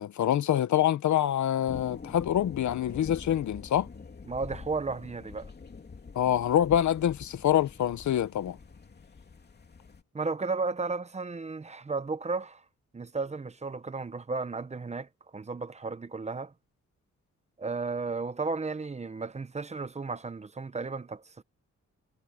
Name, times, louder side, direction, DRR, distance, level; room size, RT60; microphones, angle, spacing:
voice 1, 0.0-3.9 6.1-8.6, left 11 dB, 80° left, 0.9 m, -26 dB
sound 1, 1.7-10.0, left 5 dB, 35° left, 3.0 m, -46 dB
voice 2, 4.3-5.5 10.1-12.6 12.9-16.5 17.6-21.4, right 4 dB, 25° right, 0.8 m, -34 dB
wide cardioid pair, 140°, 29 cm